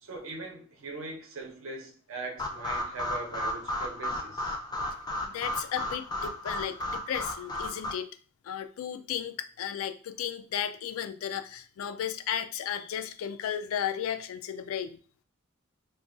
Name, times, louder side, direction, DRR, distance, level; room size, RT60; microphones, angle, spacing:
voice 1, 0.0-4.6, right 3 dB, 80° right, 0.7 m, -41 dB
sound 1, 2.4-7.9, left 1 dB, 20° left, 0.4 m, -34 dB
voice 2, 5.2-8.1 8.4-15.0, left 9 dB, 90° left, 0.3 m, -34 dB
2.5 x 2.2 x 3.7 m
head